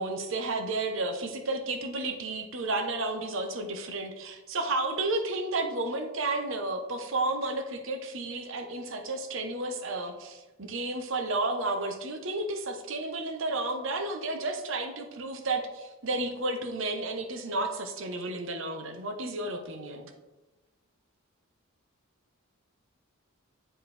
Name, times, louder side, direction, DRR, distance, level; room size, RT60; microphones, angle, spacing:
voice 1, 0.0-20.1, right 2 dB, 60° right, 5 dB, 0.8 m, -32 dB
9.8 x 4.3 x 3.3 m, 1.1 s
head